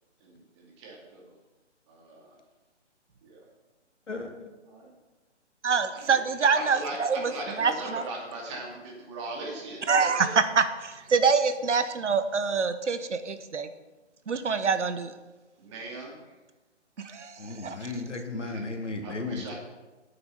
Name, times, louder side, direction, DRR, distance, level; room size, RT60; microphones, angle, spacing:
voice 1, 0.2-1.3 1.9-2.3 3.2-3.4 4.6-4.9 5.9-6.2 6.5-10.4 15.6-16.3 18.3-18.6 19.0-19.5, right 2 dB, 25° right, -1 dB, 2.4 m, -39 dB
voice 2, 4.1-4.5 17.4-19.5, left 3 dB, 80° left, 3 dB, 2.1 m, -35 dB
voice 3, 5.6-7.3 7.6-8.0 9.9-13.7 14.3-15.1 17.0-17.8, right 5 dB, 75° right, 11 dB, 1.0 m, -25 dB
9.2 x 6.9 x 6.9 m, 1.1 s
figure-of-eight pair, 150°, 36 cm